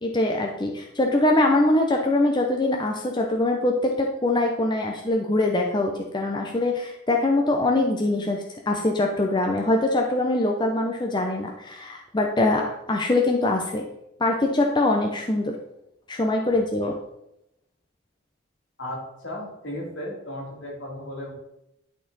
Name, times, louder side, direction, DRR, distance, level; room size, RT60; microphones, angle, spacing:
voice 1, 0.0-13.8 14.2-15.5 16.1-17.0, left 2 dB, 20° left, 1 dB, 0.6 m, -23 dB
voice 2, 18.8-21.3, left 1 dB, 65° left, -3 dB, 2.8 m, -35 dB
11.0 x 4.2 x 4.0 m, 0.84 s
head